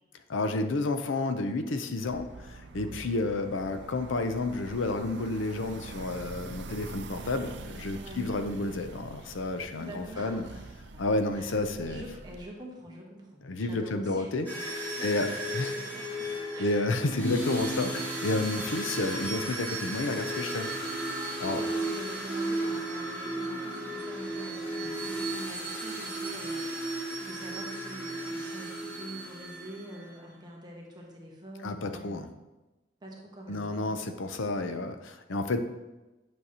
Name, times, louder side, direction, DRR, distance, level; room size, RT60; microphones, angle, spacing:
voice 1, 0.3-10.4 11.0-12.0 13.4-15.3 15.5-15.7 16.6-20.7 21.4-21.6 31.6-32.3 33.5-35.6, left 2 dB, 85° left, 7 dB, 0.6 m, -31 dB
sound 1, 2.1-12.5, right 3 dB, 65° right, 0.5 m, -45 dB
voice 2, 7.9-8.3 9.8-10.5 10.9-11.5 11.8-14.3 14.9-16.8 18.3-18.6 21.2-32.2 33.0-34.0, right 1 dB, 20° right, -2 dB, 1.1 m, -45 dB
sound 2, 14.5-30.1, right 1 dB, 10° left, 1.8 m, -34 dB
9.2 x 6.3 x 2.8 m, 1.1 s
head